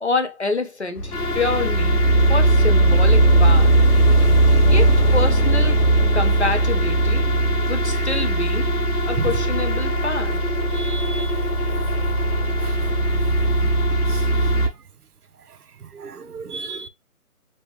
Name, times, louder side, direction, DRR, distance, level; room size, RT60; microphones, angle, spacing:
voice 1, 0.0-2.0 2.3-3.8 4.7-5.8 6.1-7.4 7.7-8.7 9.1-10.4, left 3 dB, 50° left, 0.8 m, -26 dB
sound 1, 1.0-14.7, right 1 dB, 80° left, 1.3 m, -18 dB
voice 2, 10.7-11.3 12.6-12.7 14.1-14.2 16.0-16.9, right 5 dB, 85° right, 0.8 m, -32 dB
5.2 x 2.2 x 3.5 m
figure-of-eight pair, 180°, 45 cm